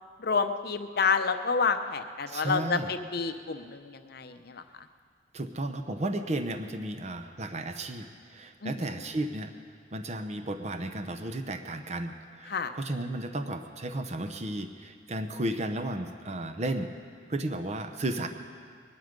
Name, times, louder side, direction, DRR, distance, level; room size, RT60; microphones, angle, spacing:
voice 1, 0.2-4.6 8.6-8.8 12.5-12.7, left 5 dB, 55° left, 8 dB, 0.7 m, -29 dB
voice 2, 2.3-2.9 5.3-8.0 8.3-9.5 9.9-16.9 17.3-18.3, right 1 dB, 40° right, 7 dB, 0.7 m, -33 dB
21.5 x 11.5 x 5.2 m, 2.1 s
head